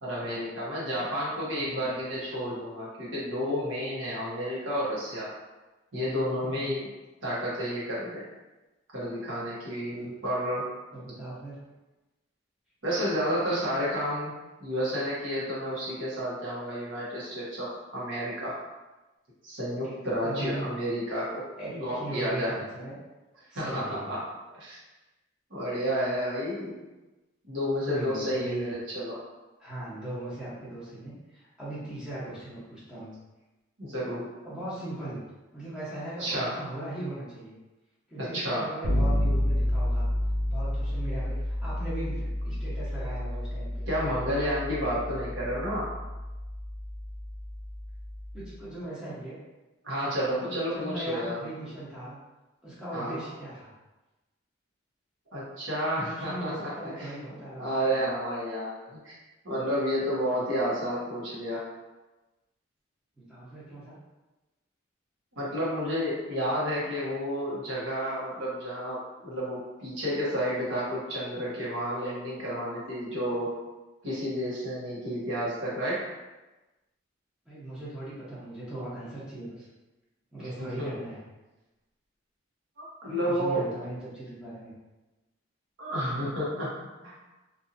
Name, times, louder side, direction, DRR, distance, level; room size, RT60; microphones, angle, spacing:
voice 1, 0.0-5.3 5.9-6.8 7.2-8.2 8.9-10.6 12.8-14.3 14.6-18.6 19.4-21.4 21.7-22.5 23.5-24.2 24.5-24.8 25.5-26.7 27.4-29.2 33.8-34.3 36.2-36.5 38.2-38.7 43.9-45.9 49.8-51.4 52.9-53.1 55.3-57.1 57.6-59.1 59.4-61.6 65.3-73.6 74.0-76.0 80.4-80.9 82.8-83.6 85.8-86.7 87.0-87.1, equal, 85° right, -7 dB, 1.1 m, -31 dB
voice 2, 1.6-2.0 6.4-6.8 9.9-10.1 10.9-11.6 19.8-20.0 20.2-20.7 21.6-23.0 23.5-24.1 27.8-28.7 29.6-33.1 34.4-35.2 35.5-37.5 38.1-40.1 40.5-43.9 48.3-49.4 50.4-52.2 52.6-53.7 56.0-58.1 63.2-64.0 77.5-79.7 80.3-81.2 83.1-84.7, right 1 dB, 5° right, -9 dB, 0.9 m, -38 dB
Bass guitar, 38.8-48.5, left 1 dB, 60° right, 0.5 m, -30 dB
2.8 x 2.6 x 2.5 m, 1.1 s
head